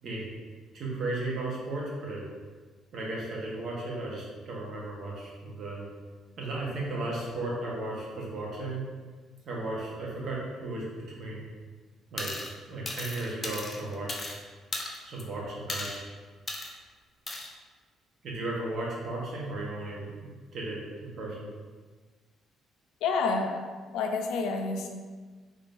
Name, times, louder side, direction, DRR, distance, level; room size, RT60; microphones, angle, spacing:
voice 1, 0.0-0.4 0.7-2.2 2.9-5.8 6.4-8.8 9.4-11.4 12.1-12.3 12.7-14.3 15.0-16.1 18.2-21.5, right 2 dB, 55° right, -4 dB, 1.0 m, -35 dB
sound 1, 12.2-12.5 12.9-14.4 14.7-15.2 15.7-16.0 16.5-16.7 17.3-17.5, left 2 dB, 25° left, 0.5 m, -36 dB
voice 2, 23.0-23.6 23.9-24.9, left 4 dB, 90° left, 4 dB, 0.4 m, -28 dB
3.6 x 3.4 x 2.5 m, 1.4 s
cardioid pair, 130°, 0 cm